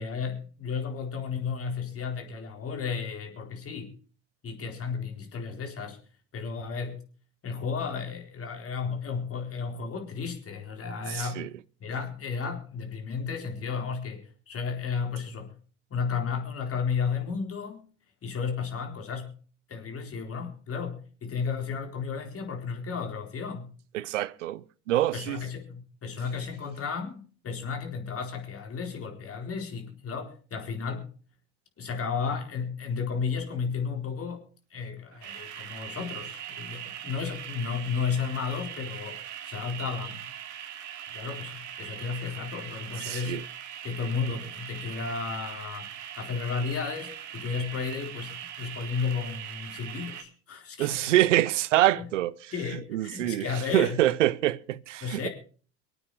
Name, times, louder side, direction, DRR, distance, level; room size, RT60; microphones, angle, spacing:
voice 1, 0.0-3.9 4.4-6.0 6.3-7.0 7.4-11.5 11.8-15.6 15.9-17.9 18.2-19.4 19.7-23.7 25.1-31.1 31.8-34.4 34.7-40.3 41.1-43.4 43.8-51.1 51.9-52.1 52.5-54.0 55.0-55.3, left 5 dB, 40° left, 4.2 m, -33 dB
voice 2, 11.1-11.5 23.9-25.4 43.0-43.4 50.8-52.3 52.9-53.5 53.7-55.3, right 14 dB, 90° right, 0.6 m, -25 dB
sound 1, 35.2-50.2, right 10 dB, 55° right, 2.3 m, -41 dB
24.0 x 8.9 x 4.9 m
hypercardioid pair, 70°, 36 cm